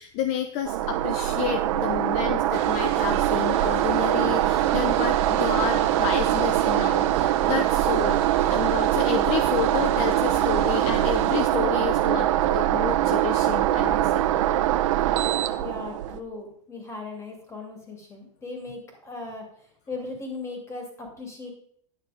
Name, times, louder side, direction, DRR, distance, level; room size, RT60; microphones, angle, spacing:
voice 1, 0.0-8.2 8.5-14.3, left 9 dB, 45° left, 8 dB, 0.7 m, -30 dB
sound 1, 0.7-16.2, right 13 dB, 75° right, 0.8 m, -23 dB
sound 2, 2.5-11.5, right 7 dB, 40° right, 2.1 m, -39 dB
voice 2, 15.6-21.5, left 3 dB, 15° left, 3 dB, 2.7 m, -38 dB
10.0 x 6.6 x 5.1 m, 0.66 s
supercardioid pair, 150°, 17 cm